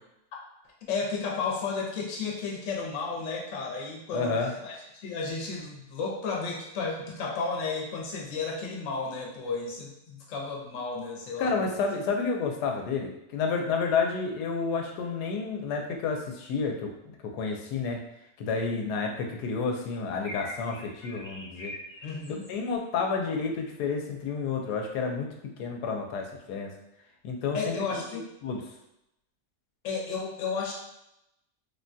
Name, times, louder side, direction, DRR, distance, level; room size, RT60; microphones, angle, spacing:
voice 1, 0.9-4.4 4.6-11.7 22.0-22.4 27.5-28.3 29.8-30.7, left 4 dB, 60° left, -1 dB, 1.0 m, -33 dB
voice 2, 4.1-4.5 11.4-18.0 18.4-21.7 22.5-25.3 25.6-26.7 27.2-28.0 28.4-28.6, left 4 dB, 85° left, 2 dB, 1.1 m, -30 dB
sound 1, 20.2-22.7, left 1 dB, 20° left, 0.5 m, -43 dB
3.4 x 2.2 x 2.6 m, 0.83 s
omnidirectional pair, 1.7 m